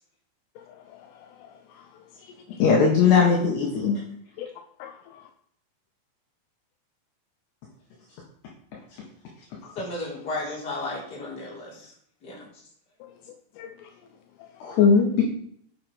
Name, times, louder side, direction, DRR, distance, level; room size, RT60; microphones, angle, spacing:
voice 1, 0.6-2.6 4.4-4.5 4.8-5.3 9.6-9.8 13.0-13.1 13.6-13.9 14.4-14.8, left 9 dB, 80° left, 5 dB, 3.2 m, -46 dB
voice 2, 2.6-4.0 14.6-15.2, left 5 dB, 65° left, -2 dB, 3.4 m, -19 dB
voice 3, 9.7-11.9 12.2-12.5, left 2 dB, 20° left, -4 dB, 4.1 m, -34 dB
9.5 x 8.7 x 5.1 m, 0.63 s
omnidirectional pair, 5.9 m